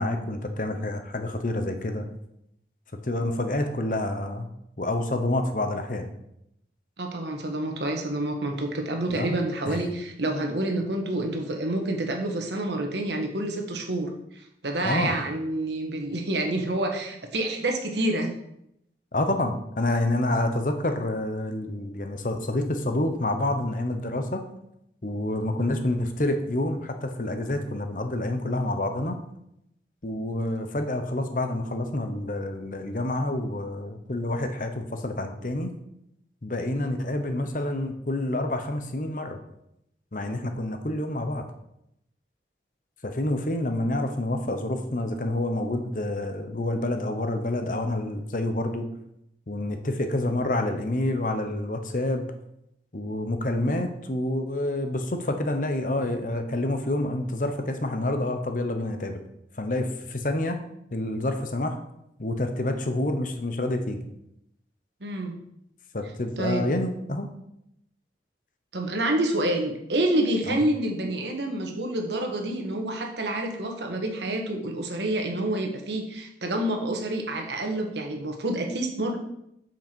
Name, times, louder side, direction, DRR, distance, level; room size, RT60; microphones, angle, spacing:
voice 1, 0.0-2.1 3.0-4.5 4.8-6.1 9.1-9.4 9.7-9.8 14.8-15.1 19.1-24.4 25.0-29.2 30.0-35.7 36.4-39.4 40.1-41.4 43.0-48.9 49.5-52.3 52.9-59.2 59.6-60.6 60.9-61.8 62.2-64.0 65.9-67.3 70.5-70.6, left 1 dB, 45° left, 6 dB, 0.9 m, -28 dB
voice 2, 7.0-14.1 14.6-18.3 65.0-65.3 66.4-66.7 68.7-79.2, right 1 dB, 80° right, 3 dB, 1.4 m, -28 dB
7.7 x 6.0 x 4.5 m, 0.79 s
head